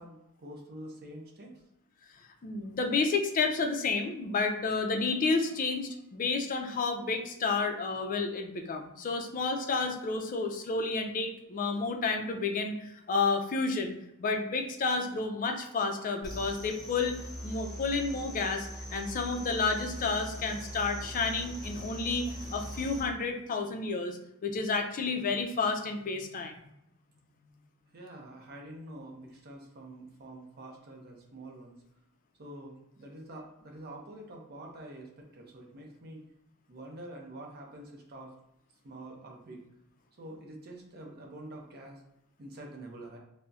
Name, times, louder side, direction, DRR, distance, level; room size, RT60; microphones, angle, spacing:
voice 1, 0.0-1.5 27.9-31.8 32.4-36.3 36.7-38.3 38.8-39.6 40.2-42.0 42.4-43.2, right 1 dB, 45° right, 0 dB, 0.6 m, -46 dB
voice 2, 2.4-13.9 14.2-17.2 17.4-26.5, left 4 dB, 40° left, 5 dB, 0.4 m, -31 dB
sound 1, 16.2-23.0, equal, 5° left, 1.4 m, -41 dB
3.9 x 2.0 x 2.3 m, 0.82 s
head